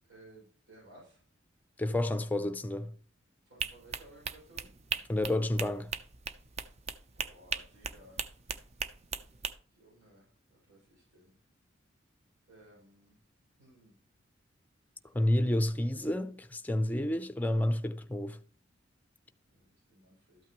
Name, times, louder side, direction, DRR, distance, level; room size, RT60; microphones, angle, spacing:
voice 1, 0.0-1.2 3.5-4.7 7.1-8.2 9.7-10.3 10.7-11.4 12.5-13.1 13.6-13.9 15.4-16.2 19.5-20.4, right 1 dB, 85° right, 6.0 m, -58 dB
voice 2, 1.8-2.9 5.1-5.9 15.1-18.4, left 1 dB, 10° left, 0.5 m, -30 dB
sound 1, 3.6-9.5, right 6 dB, 35° right, 0.6 m, -38 dB
13.0 x 8.7 x 3.0 m
head